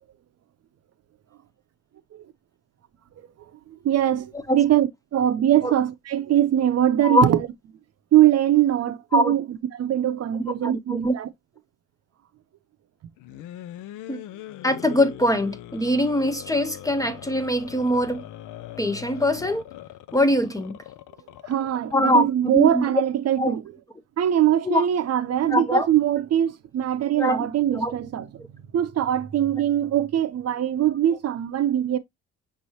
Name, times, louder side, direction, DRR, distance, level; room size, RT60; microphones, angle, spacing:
voice 1, 3.7-7.5 8.1-11.3 21.4-23.6 24.2-28.3 28.7-32.0, right 11 dB, 55° right, 0.6 m, -22 dB
voice 2, 10.6-11.1 14.1-14.2 14.6-18.2 18.8-19.6 20.1-20.8 21.9-22.8 23.4-23.5 24.6-24.8 25.5-25.9 27.2-27.5 27.7-27.9, left 1 dB, 10° left, 0.5 m, -22 dB
sound 1, 13.2-21.9, left 13 dB, 85° left, 0.5 m, -41 dB
5.4 x 3.1 x 2.7 m
cardioid pair, 90°, 30 cm